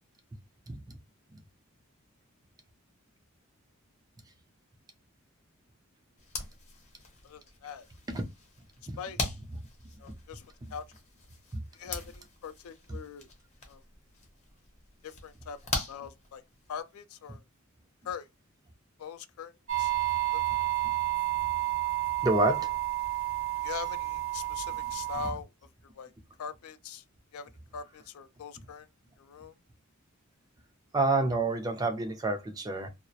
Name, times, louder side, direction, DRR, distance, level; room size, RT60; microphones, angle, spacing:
voice 1, 0.7-1.0 8.1-8.3 8.9-9.0 10.1-10.2 10.6-10.7 22.2-22.8 24.8-24.9 25.2-25.3 28.6-28.7 30.9-32.9, right 2 dB, 15° right, 0.4 m, -29 dB
sound 1, 6.2-16.8, left 3 dB, 30° left, 0.6 m, -42 dB
voice 2, 7.2-7.9 9.0-9.2 10.0-10.9 11.7-13.3 13.7-13.8 15.0-16.4 16.7-17.4 18.0-18.3 19.0-19.9 20.3-20.7 23.6-25.5 25.8-26.1 26.4-27.0 27.3-28.9 29.2-29.6, left 6 dB, 75° left, 0.4 m, -42 dB
sound 2, 19.7-25.3, right 17 dB, 65° right, 0.7 m, -30 dB
2.3 x 2.0 x 2.6 m
head